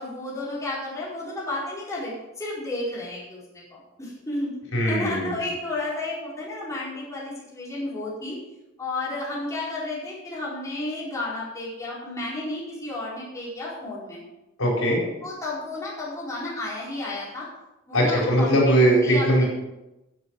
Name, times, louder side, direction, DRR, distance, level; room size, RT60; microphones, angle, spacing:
voice 1, 0.0-4.5 4.8-8.4 8.8-14.2 15.2-17.5 17.9-19.4, left 2 dB, 15° left, -7 dB, 4.7 m, -32 dB
voice 2, 4.7-5.4 14.6-15.0 17.9-19.4, right 1 dB, 75° left, -3 dB, 4.9 m, -20 dB
15.5 x 8.1 x 4.9 m, 0.96 s
head